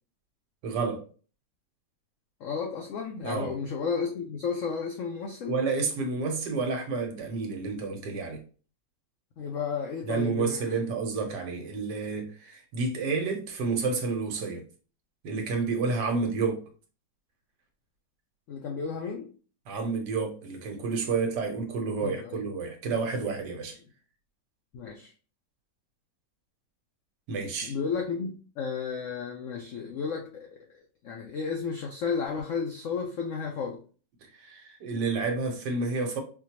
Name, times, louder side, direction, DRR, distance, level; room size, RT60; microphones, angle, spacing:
voice 1, 0.6-1.0 3.2-3.6 5.5-8.4 10.0-14.6 15.2-16.6 19.7-23.8 27.3-27.7 34.4-36.2, right 4 dB, 75° right, 1.4 m, -30 dB
voice 2, 2.4-5.6 9.4-10.6 16.1-16.3 18.5-19.3 22.0-22.4 24.7-25.1 27.6-30.5 31.0-33.8, left 5 dB, 75° left, 0.7 m, -33 dB
4.4 x 2.2 x 2.8 m
omnidirectional pair, 1.9 m